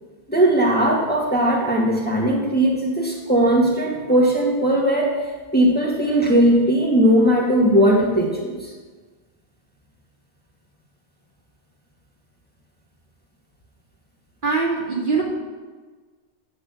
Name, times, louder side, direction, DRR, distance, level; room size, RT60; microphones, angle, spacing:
voice 1, 0.3-5.1 5.5-8.7, right 1 dB, 10° left, -3 dB, 1.7 m, -18 dB
voice 2, 14.4-15.2, right 4 dB, 50° right, -4 dB, 2.4 m, -22 dB
8.8 x 6.9 x 6.9 m, 1.4 s
omnidirectional pair, 1.1 m